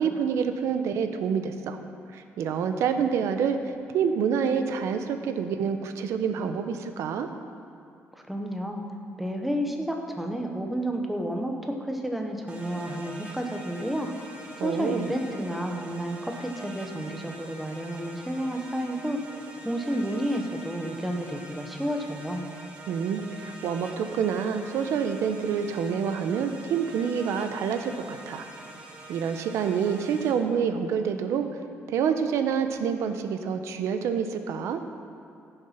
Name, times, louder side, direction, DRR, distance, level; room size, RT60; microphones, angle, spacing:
voice 1, 0.0-1.8 2.1-7.3 14.6-15.1 22.9-28.4 29.1-31.6 31.9-34.8, right 7 dB, 75° right, 8 dB, 0.8 m, -27 dB
voice 2, 8.2-8.8 9.2-14.1 14.6-19.2 19.6-22.4, equal, ahead, 2 dB, 0.9 m, -31 dB
sound 1, 12.5-30.3, right 2 dB, 25° right, 1.3 m, -45 dB
14.5 x 7.1 x 5.8 m, 2.6 s
cardioid pair, 170°, 5 cm